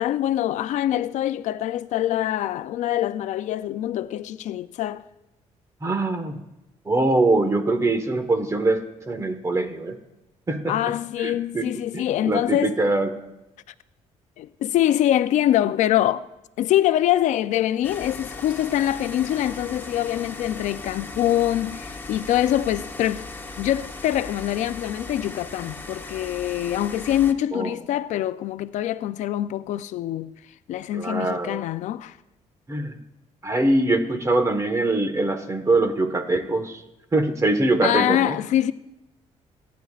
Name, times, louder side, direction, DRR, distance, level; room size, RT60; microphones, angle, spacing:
voice 1, 0.0-5.0 10.7-12.8 14.4-16.3 16.6-23.2 23.6-30.3 30.7-32.2 37.8-38.7, left 12 dB, 75° left, 0.5 m, -24 dB
voice 2, 5.8-6.4 6.8-8.8 9.1-10.0 10.5-10.8 11.2-11.6 11.9-13.1 27.5-27.7 30.9-31.6 32.7-33.0 33.4-36.8 37.1-38.4, right 2 dB, 25° right, 1.4 m, -23 dB
sound 1, 17.8-27.3, left 3 dB, 15° left, 1.0 m, -38 dB
30.0 x 10.5 x 2.4 m
cardioid pair, 115°, 13 cm